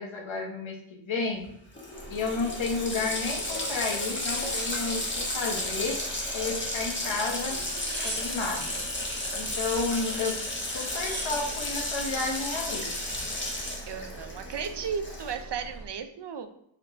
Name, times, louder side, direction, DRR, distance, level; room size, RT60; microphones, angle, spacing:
voice 1, 0.0-1.5 2.1-6.0 6.3-7.6 8.0-8.8 9.3-10.4 10.7-12.9, left 4 dB, 75° left, -1 dB, 1.2 m, -31 dB
Water tap faucet, 1.4-1.5 1.7-15.5, left 1 dB, 25° left, 1.3 m, -33 dB
sound 1, 1.9-15.9, right 3 dB, 40° right, 1.4 m, -45 dB
sound 2, 4.3-5.6 6.1-6.9 7.6-8.7 10.2-10.3 10.6-11.5 12.2-12.7, right 1 dB, 25° right, 1.0 m, -42 dB
voice 2, 13.9-16.5, right 6 dB, 60° right, 7 dB, 0.6 m, -35 dB
4.9 x 3.2 x 2.9 m, 0.74 s
cardioid pair, 50°, 47 cm